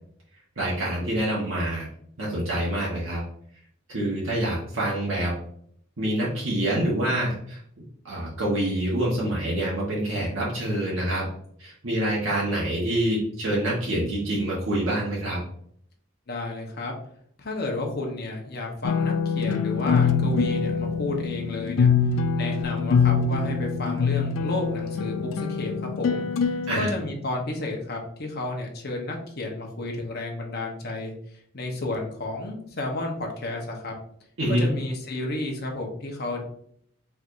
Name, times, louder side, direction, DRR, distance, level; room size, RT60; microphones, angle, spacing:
voice 1, 0.6-1.9 2.2-3.2 3.9-5.4 6.0-7.6 8.0-11.3 11.6-15.4 26.7-26.9 34.4-34.7, right 1 dB, 75° right, -6 dB, 1.2 m, -26 dB
voice 2, 16.3-16.9 17.4-21.9 22.3-26.5 26.8-31.1 31.5-33.9 34.5-36.4, left 2 dB, 50° left, 1 dB, 0.9 m, -32 dB
sound 1, 18.8-26.8, left 5 dB, 65° left, 0.3 m, -24 dB
4.6 x 3.4 x 2.5 m, 0.65 s
head